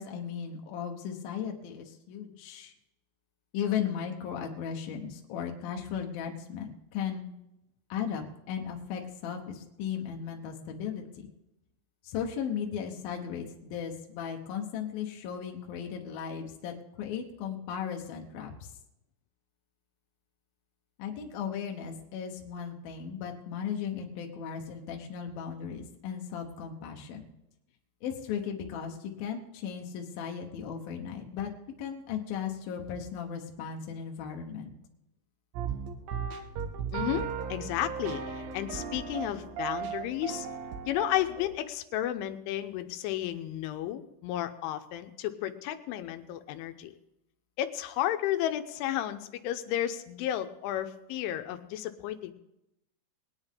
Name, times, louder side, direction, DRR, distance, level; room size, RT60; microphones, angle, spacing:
voice 1, 0.0-2.7 3.5-7.3 7.9-11.0 12.0-18.7 21.0-27.3 28.0-31.5 31.8-34.7, left 8 dB, 65° left, 2 dB, 2.5 m, -36 dB
sound 1, 35.5-41.5, right 7 dB, 75° right, 2.2 m, -36 dB
voice 2, 36.9-40.5 40.9-46.9 47.6-52.3, left 12 dB, 85° left, 8 dB, 3.2 m, -33 dB
21.0 x 9.8 x 3.7 m, 0.87 s
omnidirectional pair, 5.5 m